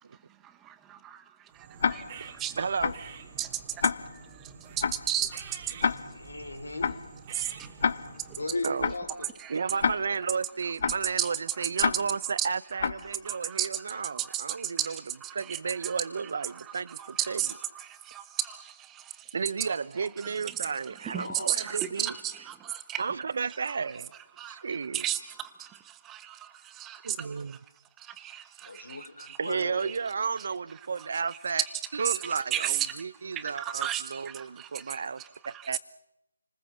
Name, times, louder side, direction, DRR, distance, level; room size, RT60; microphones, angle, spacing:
voice 1, 0.4-2.7 3.4-5.6 7.3-7.7 9.4-9.5 11.2-11.3 11.6-11.9 12.4-12.5 13.2-16.0 16.4-19.3 20.2-20.6 21.0-23.0 24.4-24.6 24.9-27.6 28.0-29.4 29.9-30.0 31.0-31.1 32.0-33.0 33.3-35.8, right 11 dB, 10° right, 1.0 m, -35 dB
sound 1, 1.5-8.8, right 6 dB, 30° right, 2.6 m, -48 dB
Tick-tock, 1.8-2.3 2.8-3.2 3.8-4.3 4.8-5.2 5.8-6.3 6.8-7.2 7.8-8.3 8.8-9.2 9.8-10.3 10.8-11.2 11.8-12.3 12.8-13.2, left 6 dB, 50° left, 0.8 m, -29 dB
voice 2, 2.6-2.9 5.8-5.9 8.6-8.9 9.5-15.0 15.3-17.4 19.3-22.1 23.0-24.1 24.5-25.0 27.0-27.6 29.4-31.6 31.9-35.8, right 5 dB, 55° right, 0.8 m, -33 dB
voice 3, 5.9-7.0 8.3-9.4 21.1-21.6 28.6-29.9, left 2 dB, 80° left, 3.8 m, -37 dB
29.5 x 20.0 x 7.3 m
figure-of-eight pair, 155°, 0 cm